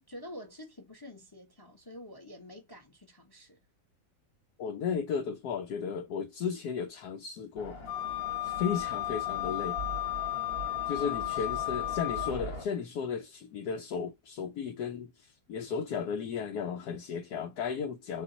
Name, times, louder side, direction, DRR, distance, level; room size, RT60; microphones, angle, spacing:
voice 1, 0.1-3.6 11.0-11.5, left 1 dB, 15° left, 0.9 m, -48 dB
voice 2, 4.6-7.8 8.4-9.8 10.9-18.2, left 6 dB, 65° left, 1.1 m, -34 dB
sound 1, 7.6-12.6, left 1 dB, 35° left, 1.4 m, -41 dB
Wind instrument woodwind instrument, 7.9-12.4, left 15 dB, 85° left, 1.5 m, -34 dB
4.0 x 3.0 x 3.9 m
omnidirectional pair, 2.0 m